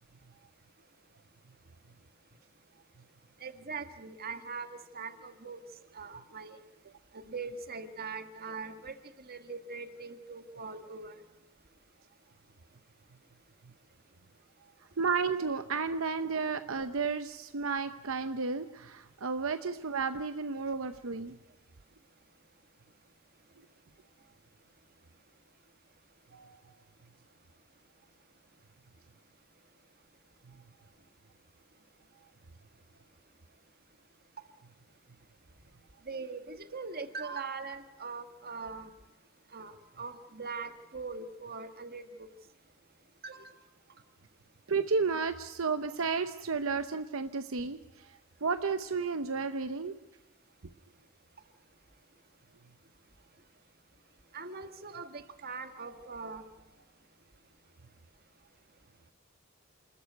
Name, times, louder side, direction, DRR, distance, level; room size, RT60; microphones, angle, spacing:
voice 1, 3.4-5.6 5.9-6.6 7.1-8.9 9.3-11.2 26.3-26.6 36.1-38.9 39.5-42.3 43.2-43.6 54.3-56.4, right 4 dB, 50° right, 8 dB, 1.7 m, -41 dB
voice 2, 15.0-21.4 30.5-30.6 44.7-50.0, right 4 dB, 75° right, 9 dB, 0.8 m, -32 dB
28.0 x 14.0 x 9.4 m, 1.0 s
head